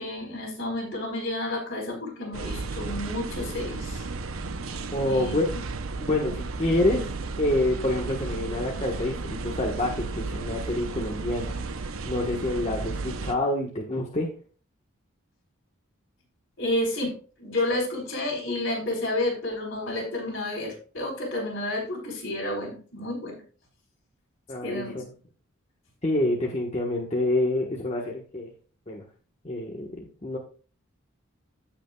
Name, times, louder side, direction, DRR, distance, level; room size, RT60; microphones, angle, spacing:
voice 1, 0.0-4.0 5.0-5.6 16.6-23.4 24.6-25.0, left 1 dB, 60° left, -1 dB, 4.3 m, -30 dB
sound 1, 2.3-13.3, right 3 dB, 80° right, 0.8 m, -34 dB
voice 2, 4.9-5.5 6.0-7.1 7.4-11.6 12.1-14.3 24.5-25.0 26.0-28.5 28.9-29.0 29.4-30.4, left 1 dB, 30° left, -2 dB, 1.3 m, -27 dB
16.0 x 5.6 x 2.3 m, 0.39 s
head